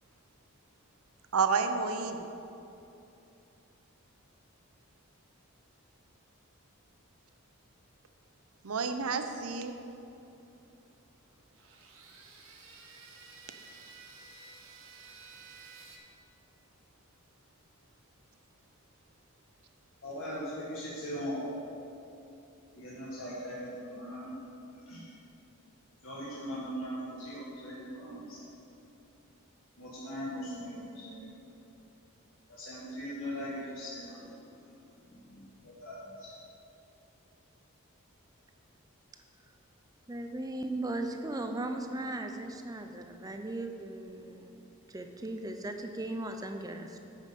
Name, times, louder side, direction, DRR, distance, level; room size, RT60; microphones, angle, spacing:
voice 1, 1.3-2.2 8.6-9.7, right 5 dB, 85° right, 8 dB, 0.7 m, -30 dB
sound 1, 11.5-16.0, right 4 dB, 70° right, 1.3 m, -52 dB
voice 2, 20.0-21.5 22.7-24.4 24.9-25.2 26.0-28.4 29.8-31.3 32.5-34.3 34.6-34.7 35.0-36.3, equal, 65° left, -8 dB, 1.6 m, -40 dB
voice 3, 40.1-47.0, right 2 dB, 15° right, 5 dB, 0.5 m, -37 dB
8.8 x 5.6 x 6.6 m, 2.8 s
head